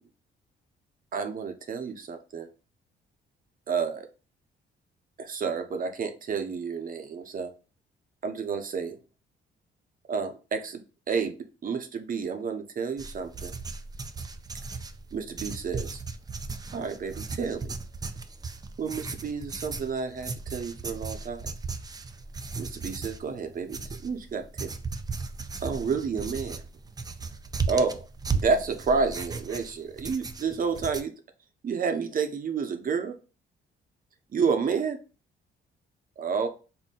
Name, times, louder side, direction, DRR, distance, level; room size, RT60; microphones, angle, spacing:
voice 1, 1.1-2.5 3.7-4.1 5.2-7.5 8.2-9.0 10.1-10.8 11.1-13.5 15.1-16.0 16.7-17.7 18.8-21.5 22.6-24.7 25.6-26.6 27.7-28.1 28.3-31.1 31.6-33.2 34.3-35.0 36.2-36.5, right 5 dB, 45° right, 7 dB, 0.7 m, -30 dB
sound 1, 13.0-31.0, right 4 dB, 20° right, 0.4 m, -36 dB
3.7 x 2.2 x 4.1 m, 0.33 s
cardioid pair, 90°, 20 cm